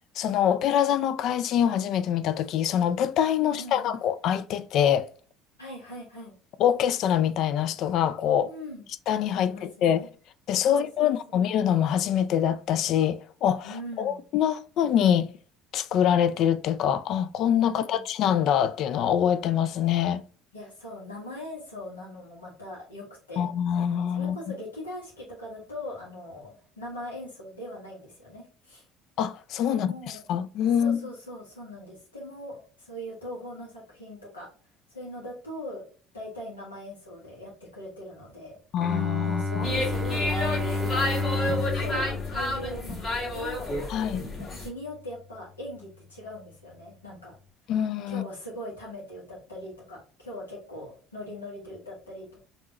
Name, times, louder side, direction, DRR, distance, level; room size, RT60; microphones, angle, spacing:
voice 1, 0.2-5.1 6.6-8.5 9.1-10.1 10.5-15.3 15.7-20.2 23.4-24.4 29.2-29.9 30.3-31.0 38.7-39.7 43.9-44.2 47.7-48.2, left 9 dB, 55° left, 0.3 m, -24 dB
voice 2, 3.4-4.0 5.6-6.3 8.4-8.8 9.4-10.1 10.6-11.4 13.6-14.2 17.6-18.0 20.5-23.5 24.1-28.9 29.7-30.3 30.8-34.5 34.9-35.8 36.1-38.6 39.2-41.0 41.4-43.7 44.4-47.4 48.1-52.5, left 1 dB, 85° left, 1.5 m, -41 dB
Bowed string instrument, 38.8-44.5, left 3 dB, 15° right, 0.6 m, -31 dB
sound 1, 39.6-44.7, left 1 dB, 35° left, 1.9 m, -30 dB
5.2 x 2.9 x 2.9 m
figure-of-eight pair, 60°, 0 cm